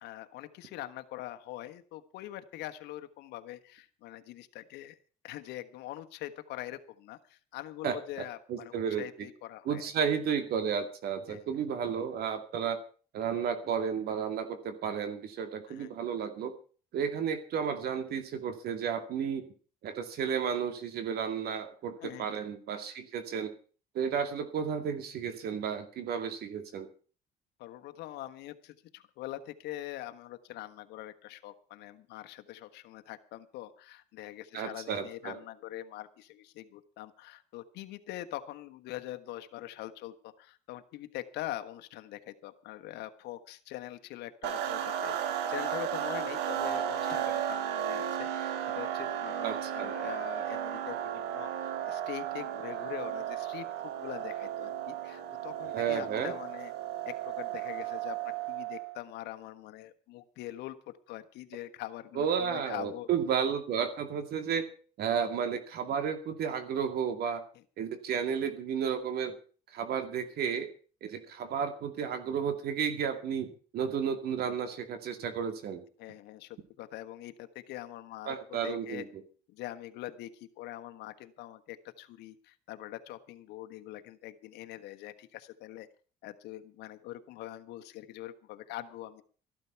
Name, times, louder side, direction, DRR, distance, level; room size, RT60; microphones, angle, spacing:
voice 1, 0.0-5.0 5.2-9.9 11.3-11.5 15.7-15.9 22.0-22.3 27.6-56.7 57.0-63.1 67.5-67.6 76.0-79.0 79.5-85.9 86.2-89.2, left 14 dB, 85° left, 9 dB, 1.3 m, -43 dB
voice 2, 7.8-9.0 9.7-12.8 13.1-16.5 16.9-19.5 19.8-23.5 23.9-26.9 34.5-35.4 49.4-49.9 55.7-56.3 62.2-64.6 65.0-67.4 67.8-69.3 69.7-70.7 71.0-75.8 78.3-79.0, right 7 dB, 65° right, 8 dB, 2.3 m, -32 dB
sound 1, 44.4-59.0, right 10 dB, 90° right, 1.7 m, -34 dB
14.0 x 12.0 x 5.8 m, 0.40 s
cardioid pair, 110°, 17 cm